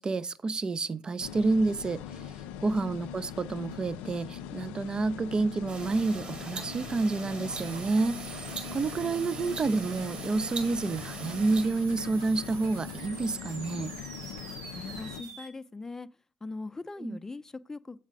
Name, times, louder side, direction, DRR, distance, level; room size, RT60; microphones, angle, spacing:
voice 1, 0.0-2.2 2.6-13.9 17.0-17.2, right 3 dB, 35° right, 0.5 m, -29 dB
sound 1, 1.2-15.2, left 9 dB, 75° left, 0.3 m, -42 dB
voice 2, 2.6-3.0 14.7-16.1 16.4-18.0, left 3 dB, 20° left, 0.5 m, -41 dB
sound 2, 5.7-11.6, right 4 dB, 50° right, 1.9 m, -42 dB
sound 3, 7.5-15.5, right 6 dB, 85° right, 1.0 m, -46 dB
7.3 x 4.2 x 6.1 m
hypercardioid pair, 50°, 2 cm